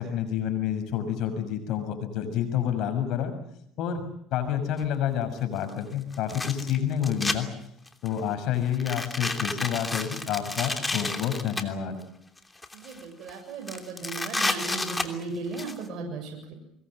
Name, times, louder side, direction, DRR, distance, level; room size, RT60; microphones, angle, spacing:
voice 1, 0.0-3.3 3.8-7.5 8.0-11.9, left 9 dB, 65° left, 8 dB, 6.8 m, -29 dB
sound 1, 4.8-4.9 6.1-7.4 7.9-8.2 8.7-11.6 12.4-13.0 13.3-13.4 13.7-15.7, left 2 dB, 10° left, 3.0 m, -31 dB
voice 2, 12.8-16.5, right 3 dB, 55° right, 3 dB, 7.7 m, -36 dB
24.5 x 22.0 x 7.8 m, 0.77 s
supercardioid pair, 105°, 0 cm